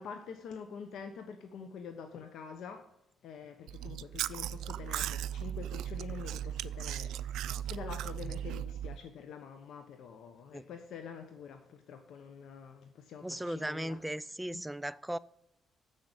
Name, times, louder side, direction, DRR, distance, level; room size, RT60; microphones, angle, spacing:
voice 1, 0.0-2.9 3.2-14.0 14.5-14.6, left 6 dB, 75° left, 1.1 m, -46 dB
Chewing mastication, 3.7-9.0, right 11 dB, 85° right, 0.3 m, -37 dB
voice 2, 13.2-15.2, right 1 dB, 5° right, 0.4 m, -37 dB
7.5 x 6.6 x 8.1 m
cardioid pair, 90°, 0 cm